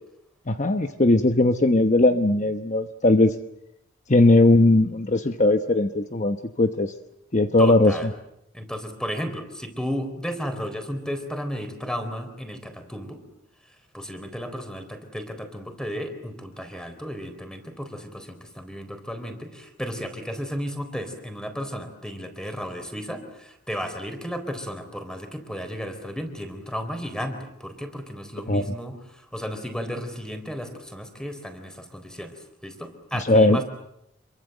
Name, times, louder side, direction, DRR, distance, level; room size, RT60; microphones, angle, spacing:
voice 1, 0.5-3.3 4.1-6.9 7.3-7.9 28.5-28.6 33.1-33.6, left 2 dB, 35° left, 8 dB, 1.0 m, -19 dB
voice 2, 7.6-8.1 8.5-13.2 13.9-32.3 32.6-33.6, equal, 5° left, 7 dB, 3.9 m, -34 dB
27.5 x 23.5 x 7.9 m, 0.83 s
head